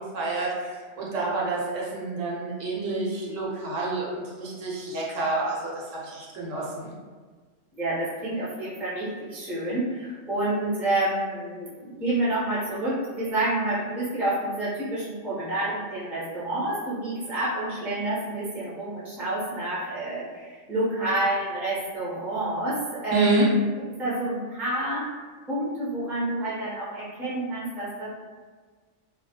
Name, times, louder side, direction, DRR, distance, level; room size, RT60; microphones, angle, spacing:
voice 1, 0.0-6.9 23.1-23.5, right 3 dB, 75° right, -4 dB, 1.0 m, -28 dB
voice 2, 7.7-23.6 24.0-25.1 25.5-28.1, right 1 dB, ahead, -9 dB, 0.5 m, -28 dB
2.2 x 2.1 x 2.8 m, 1.5 s
omnidirectional pair, 1.3 m